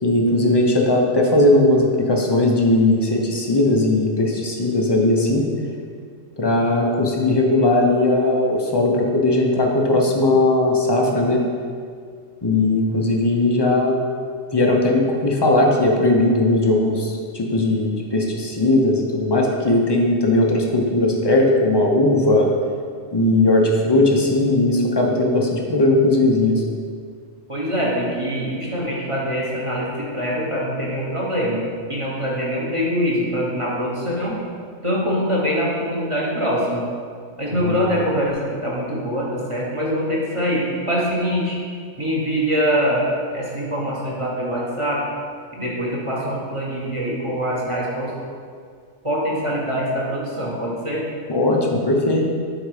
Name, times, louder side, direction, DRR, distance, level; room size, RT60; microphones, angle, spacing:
voice 1, 0.0-5.5 6.4-11.4 12.4-14.0 14.5-22.5 23.1-26.6 37.6-37.8 51.3-52.2, left 2 dB, 30° left, 0 dB, 0.5 m, -18 dB
voice 2, 27.5-31.6 31.9-34.4 34.8-36.9 37.4-41.6 42.0-45.0 45.5-48.1 49.0-51.0, equal, 25° right, -5 dB, 1.1 m, -23 dB
7.8 x 3.8 x 4.8 m, 2.1 s
omnidirectional pair, 1.4 m